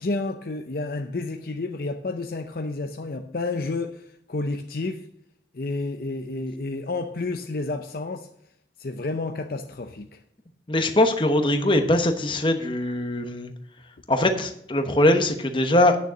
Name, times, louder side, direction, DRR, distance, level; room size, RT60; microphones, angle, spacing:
voice 1, 0.0-5.1 5.5-8.3 8.8-10.2, left 3 dB, 50° left, 0.6 m, -30 dB
voice 2, 10.7-13.5 14.1-16.0, left 1 dB, 25° left, 1.0 m, -21 dB
9.2 x 6.6 x 6.3 m
head